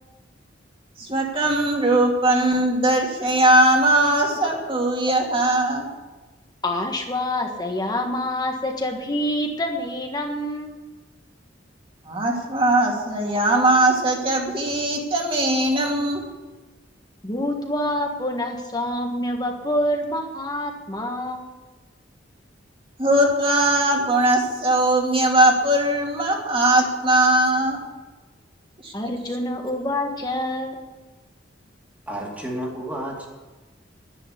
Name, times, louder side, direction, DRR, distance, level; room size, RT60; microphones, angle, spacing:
voice 1, 1.0-5.8 12.1-16.2 23.0-27.8 28.8-29.1, right 1 dB, 30° right, 0 dB, 2.7 m, -20 dB
voice 2, 6.6-10.7 17.2-21.5 28.9-30.9, left 1 dB, 20° left, 3 dB, 1.5 m, -26 dB
voice 3, 32.1-33.3, right 1 dB, 10° right, -2 dB, 2.7 m, -31 dB
10.5 x 10.5 x 8.3 m, 1.2 s
head